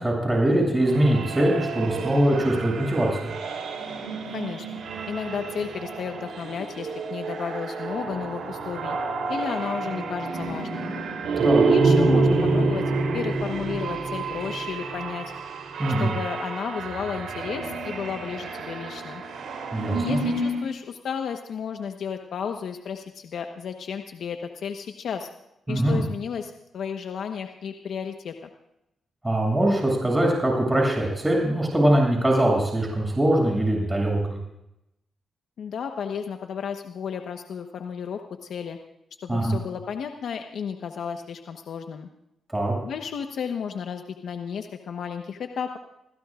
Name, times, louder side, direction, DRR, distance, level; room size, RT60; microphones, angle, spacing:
voice 1, 0.0-3.3 11.4-11.7 15.8-16.1 19.7-20.2 25.7-26.0 29.2-34.4 39.3-39.6 42.5-42.8, right 1 dB, 15° right, -1 dB, 7.5 m, -22 dB
sound 1, 0.8-20.7, right 3 dB, 75° right, 3.3 m, -28 dB
voice 2, 4.3-4.8 5.1-9.0 9.3-10.9 11.7-15.3 16.0-19.2 19.9-25.3 25.7-28.5 35.6-38.8 39.2-42.1 42.8-45.8, left 7 dB, 75° left, 5 dB, 1.2 m, -33 dB
28.0 x 16.0 x 2.5 m, 0.85 s
cardioid pair, 65°, 0 cm